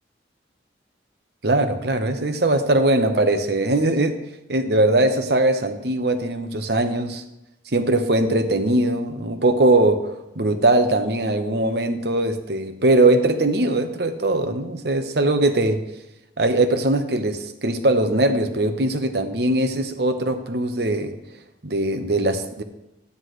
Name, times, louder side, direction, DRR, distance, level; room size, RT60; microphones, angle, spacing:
voice 1, 1.4-4.1 4.5-7.2 7.7-15.8 16.4-21.1 21.6-22.6, right 2 dB, 60° right, 8 dB, 0.9 m, -20 dB
13.0 x 9.7 x 3.2 m, 0.93 s
head